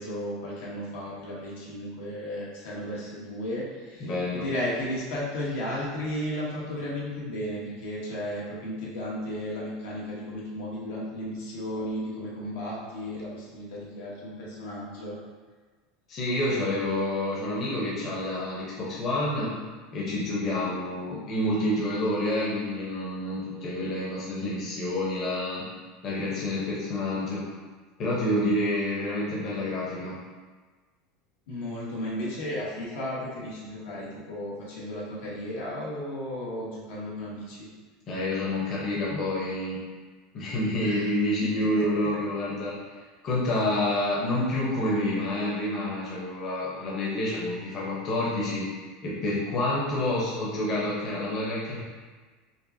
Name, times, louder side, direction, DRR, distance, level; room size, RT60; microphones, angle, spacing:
voice 1, 0.0-15.2 31.5-37.7 40.8-41.1 41.4-41.9, left 1 dB, 80° left, -5 dB, 1.1 m, -34 dB
voice 2, 4.0-4.5 16.1-19.5 19.9-25.7 26.0-27.5 28.0-30.2 38.1-39.8 40.3-42.8 43.2-48.7 49.0-51.8, left 1 dB, 35° left, -6 dB, 0.8 m, -28 dB
5.1 x 2.1 x 2.7 m, 1.4 s
supercardioid pair, 150°, 0 cm